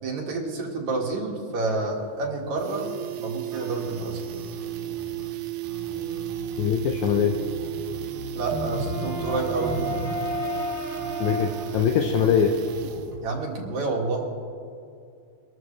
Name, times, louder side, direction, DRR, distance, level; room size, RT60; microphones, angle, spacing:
voice 1, 0.0-2.9 3.2-4.2 8.3-9.8 13.2-14.3, right 3 dB, 65° right, -1 dB, 3.2 m, -29 dB
sound 1, 1.7-1.8 2.1-2.2 2.4-13.3 13.5-13.6, right 14 dB, 80° right, 1.6 m, -34 dB
sound 2, 3.5-13.1, equal, 5° right, 2.7 m, -34 dB
voice 2, 6.6-7.4 11.2-12.5, left 8 dB, 75° left, 3 dB, 2.0 m, -22 dB
24.0 x 13.0 x 3.3 m, 2.4 s
omnidirectional pair, 3.7 m